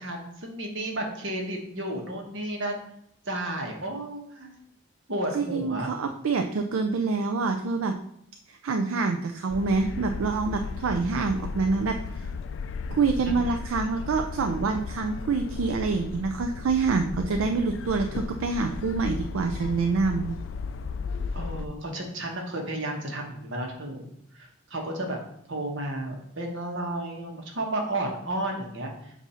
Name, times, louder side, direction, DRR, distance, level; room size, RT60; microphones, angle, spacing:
voice 1, 0.0-2.8 3.2-4.6 5.1-5.9 12.2-12.4 13.2-13.4 21.3-24.1 24.3-25.2 25.5-29.1, right 1 dB, 60° right, 1 dB, 1.2 m, -32 dB
voice 2, 5.3-7.9 8.5-12.3 12.9-20.3, right 4 dB, 75° right, 5 dB, 0.4 m, -26 dB
sound 1, 9.5-21.7, left 5 dB, 60° left, 0.3 m, -35 dB
7.2 x 2.7 x 5.6 m, 0.72 s
head